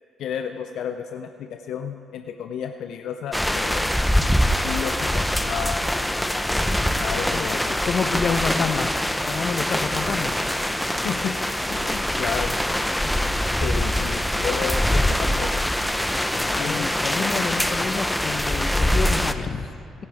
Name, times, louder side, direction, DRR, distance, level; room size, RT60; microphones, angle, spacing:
voice 1, 0.2-3.9 4.6-5.9 6.6-7.6 8.6-8.7 10.8-11.4 11.7-12.6 13.4-15.5 16.3-17.0, left 8 dB, 80° left, 6 dB, 0.6 m, -32 dB
sound 1, 3.3-19.3, equal, 5° left, 0.7 m, -24 dB
voice 2, 6.6-10.5 16.6-19.7, left 5 dB, 55° left, 9 dB, 0.9 m, -29 dB
25.5 x 10.5 x 3.5 m, 2.3 s
cardioid pair, 90°, 0 cm